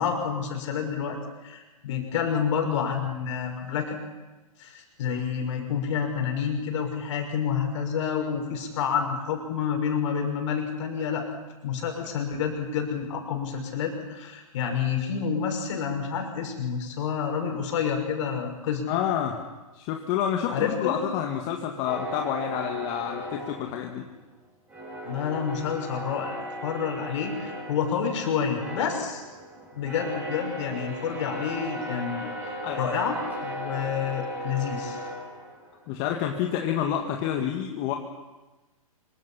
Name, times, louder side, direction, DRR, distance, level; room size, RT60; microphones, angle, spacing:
voice 1, 0.0-4.0 4.6-11.3 11.6-18.8 20.5-21.0 25.0-29.2 29.7-35.0, left 7 dB, 55° left, 3 dB, 6.1 m, -29 dB
voice 2, 18.9-19.4 19.7-24.0 32.6-32.8 35.9-37.9, left 9 dB, 35° left, 2 dB, 2.1 m, -28 dB
sound 1, 21.9-24.3 24.7-35.9, right 1 dB, 10° right, 6.1 m, -37 dB
26.0 x 24.5 x 5.8 m, 1.1 s
hypercardioid pair, 130°, 19 cm